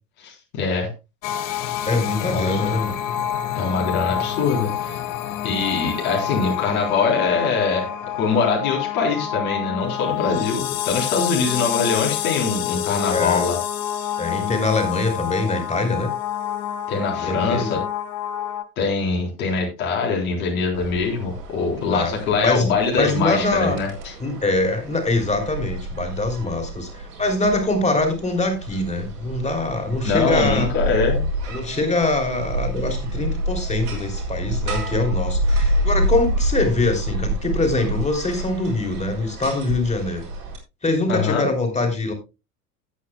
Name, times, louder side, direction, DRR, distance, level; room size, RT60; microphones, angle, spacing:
voice 1, 0.2-0.9 2.2-2.7 3.5-5.0 5.4-7.9 8.2-13.6 16.9-17.8 18.8-23.9 30.0-31.2 41.1-41.5, left 4 dB, 60° left, -1 dB, 3.9 m, -23 dB
sound 1, 1.2-18.6, left 11 dB, 40° left, 1.1 m, -27 dB
voice 2, 1.9-2.9 13.1-13.5 14.2-16.1 17.1-17.7 21.9-23.8 24.2-30.7 31.5-40.2 40.8-42.1, left 2 dB, 15° left, 5 dB, 3.3 m, -23 dB
sound 2, 20.7-40.6, right 1 dB, 70° right, 4.3 m, -28 dB
17.0 x 8.4 x 2.2 m, 0.27 s
figure-of-eight pair, 80°, 48 cm